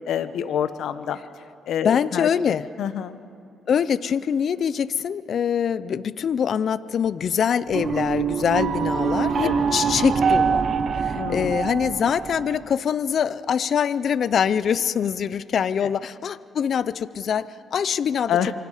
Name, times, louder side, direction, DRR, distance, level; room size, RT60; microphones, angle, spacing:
voice 1, 0.0-1.2 1.7-3.1 9.4-9.7 11.2-11.5 15.8-15.9 18.3-18.5, left 9 dB, 75° left, 12 dB, 0.9 m, -27 dB
voice 2, 1.8-2.7 3.7-10.6 11.0-18.4, left 7 dB, 55° left, 17 dB, 0.5 m, -24 dB
sound 1, 7.7-12.7, right 6 dB, 55° right, 1.3 m, -24 dB
27.5 x 24.5 x 5.0 m, 2.6 s
cardioid pair, 90°, 0 cm